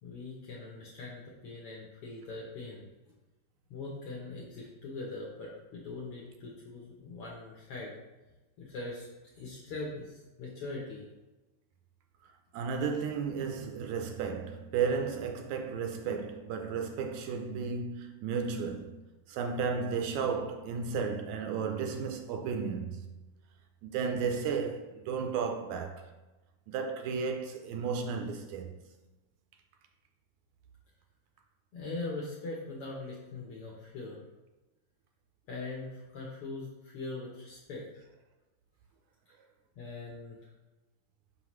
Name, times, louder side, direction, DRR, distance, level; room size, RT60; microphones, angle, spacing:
voice 1, 0.0-2.8 3.7-7.9 8.6-9.1 9.4-11.0 31.7-34.2 35.5-37.8 39.8-40.4, left 3 dB, 70° left, 1.4 m, -41 dB
voice 2, 12.5-19.0 19.3-23.1 23.8-26.1 26.7-28.8, right 5 dB, 80° right, 1.8 m, -33 dB
5.7 x 5.5 x 3.1 m
omnidirectional pair, 3.5 m